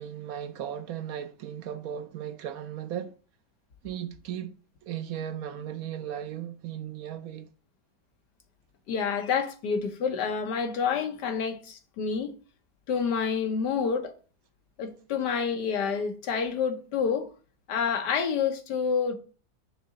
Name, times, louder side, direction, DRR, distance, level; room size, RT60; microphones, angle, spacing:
voice 1, 0.0-3.1 3.8-4.6 4.8-7.5, right 10 dB, 70° right, 1.0 m, -36 dB
voice 2, 8.9-12.3 12.9-14.1 14.8-17.3 17.7-19.1, left 6 dB, 90° left, 1.6 m, -28 dB
6.8 x 3.8 x 6.2 m
omnidirectional pair, 1.8 m